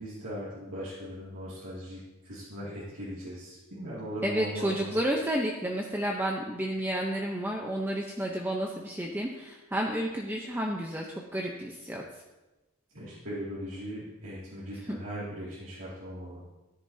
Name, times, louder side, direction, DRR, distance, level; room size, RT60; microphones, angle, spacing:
voice 1, 0.0-4.9 12.9-16.4, equal, 75° right, -8 dB, 2.4 m, -39 dB
voice 2, 4.2-12.0 14.9-15.0, right 1 dB, 10° right, -1 dB, 0.7 m, -31 dB
13.5 x 10.5 x 2.8 m, 1.1 s
head